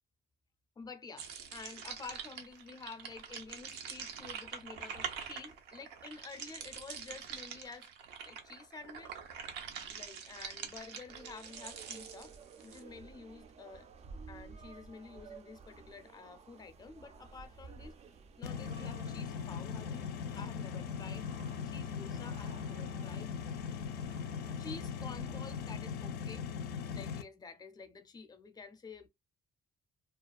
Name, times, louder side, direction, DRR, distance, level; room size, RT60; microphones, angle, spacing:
voice 1, 0.8-7.9 8.2-9.2 9.9-13.9 14.3-18.0 18.4-21.3 21.6-23.3 24.6-26.5 26.9-29.1, left 4 dB, 25° left, 0.5 m, -50 dB
sound 1, 1.2-12.8, right 7 dB, 85° right, 0.6 m, -45 dB
sound 2, 11.1-25.7, right 5 dB, 40° right, 0.4 m, -54 dB
sound 3, 18.4-27.2, left 6 dB, 70° left, 0.4 m, -39 dB
2.4 x 2.2 x 2.3 m
cardioid pair, 110°, 17 cm